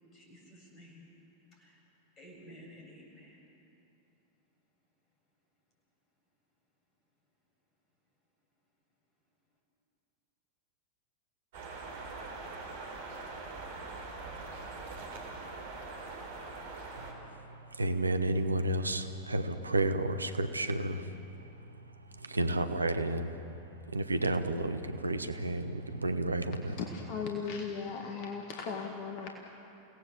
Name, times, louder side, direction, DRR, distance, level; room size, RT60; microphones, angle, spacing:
voice 1, 0.1-1.0 1.6-1.8 2.2-3.4, equal, 25° left, -1 dB, 7.8 m, -53 dB
sound 1, 11.5-17.1, right 3 dB, 55° right, 3.9 m, -43 dB
voice 2, 17.0-26.8, right 2 dB, 80° right, 9 dB, 1.1 m, -32 dB
voice 3, 26.8-29.3, left 5 dB, 45° left, 2 dB, 1.9 m, -37 dB
30.0 x 18.0 x 7.3 m, 2.9 s
figure-of-eight pair, 90°, 0 cm